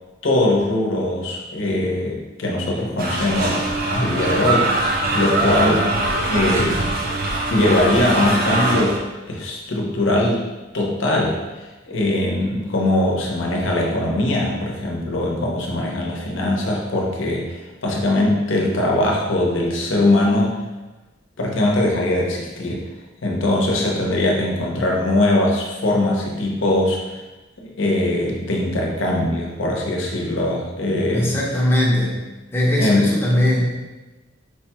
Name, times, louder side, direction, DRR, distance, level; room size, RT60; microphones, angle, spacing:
voice 1, 0.2-4.7 5.1-5.9 6.3-6.9 7.5-9.0 9.3-10.4 10.7-20.6 21.4-22.8 23.2-27.0 27.6-31.3 32.8-33.1, left 1 dB, 80° left, -2 dB, 0.7 m, -21 dB
sound 1, 3.0-9.0, right 2 dB, 50° right, 0.5 m, -22 dB
voice 2, 31.1-32.2 32.5-33.6, left 1 dB, 10° left, -5 dB, 0.6 m, -19 dB
4.7 x 2.2 x 2.9 m, 1.2 s
head